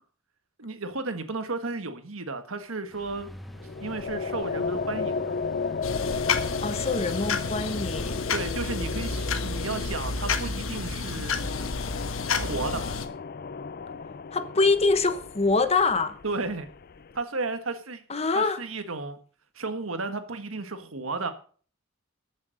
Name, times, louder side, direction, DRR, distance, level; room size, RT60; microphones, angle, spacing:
voice 1, 0.6-3.3 3.8-5.3 8.3-11.3 12.3-13.0 16.2-16.7 17.1-18.0 18.3-19.2 19.5-21.3, right 3 dB, 80° right, 1.6 m, -33 dB
sound 1, 2.9-8.2, equal, ahead, 0.8 m, -44 dB
sound 2, 3.6-17.2, left 4 dB, 45° left, 0.5 m, -34 dB
sound 3, 5.8-13.1, left 4 dB, 75° left, 1.4 m, -30 dB
voice 2, 6.6-8.2 14.3-16.2 18.1-18.6, left 3 dB, 30° left, 1.0 m, -24 dB
14.0 x 7.3 x 6.4 m
head